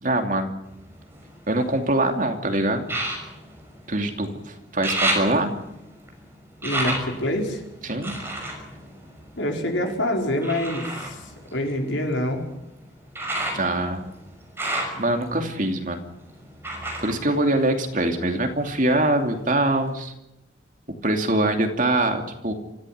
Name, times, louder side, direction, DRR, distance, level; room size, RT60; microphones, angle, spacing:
voice 1, 0.0-0.6 1.5-2.9 3.9-5.5 7.8-8.2 13.5-14.1 15.0-16.1 17.0-20.1 21.0-22.5, right 1 dB, 40° right, 4 dB, 2.7 m, -23 dB
sound 1, 0.7-2.0 2.8-4.3 4.6-9.8 10.4-18.3 18.6-19.4 19.9-20.0, right 1 dB, 10° right, 6.0 m, -32 dB
voice 2, 6.6-7.6 9.4-11.2 11.5-12.4, left 1 dB, 75° left, 2 dB, 5.0 m, -25 dB
25.5 x 15.0 x 9.4 m, 0.87 s
head